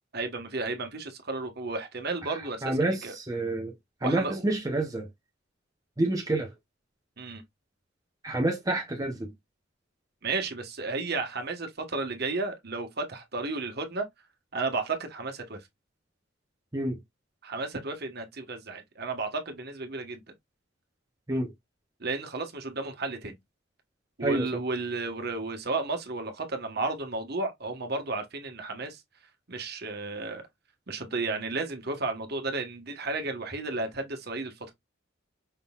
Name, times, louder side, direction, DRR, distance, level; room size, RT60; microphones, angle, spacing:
voice 1, 0.1-3.1 4.0-4.4 7.2-7.4 10.2-14.1 14.5-15.7 17.4-20.2 22.0-23.4 24.2-29.0 29.5-30.4 30.9-34.7, right 3 dB, 50° right, 1.2 m, -33 dB
voice 2, 2.6-3.7 4.0-5.1 6.0-6.5 8.2-9.3 16.7-16.9 21.3-21.5 24.2-24.5, right 2 dB, 15° right, 0.7 m, -28 dB
5.5 x 3.8 x 2.3 m
head